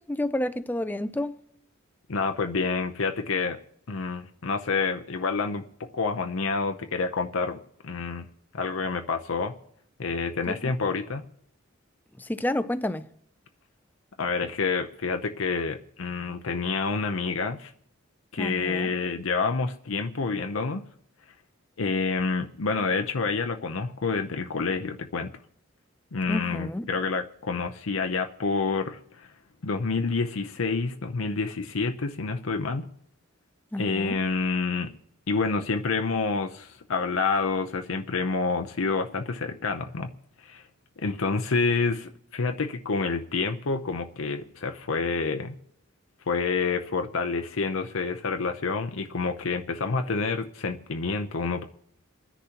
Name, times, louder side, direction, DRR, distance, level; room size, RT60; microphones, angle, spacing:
voice 1, 0.0-1.4 10.5-10.7 12.2-13.0 18.4-18.9 26.3-26.9 33.7-34.2, left 1 dB, 10° left, 0.4 m, -30 dB
voice 2, 2.1-3.6 3.9-5.6 5.9-7.6 7.8-8.2 8.5-9.5 10.0-11.3 14.2-17.7 18.3-20.8 21.8-25.3 26.1-29.3 29.6-32.9 33.8-34.9 35.3-40.1 40.4-40.6 41.0-45.6 46.3-51.6, left 4 dB, 85° left, 0.7 m, -28 dB
28.0 x 10.0 x 2.9 m
head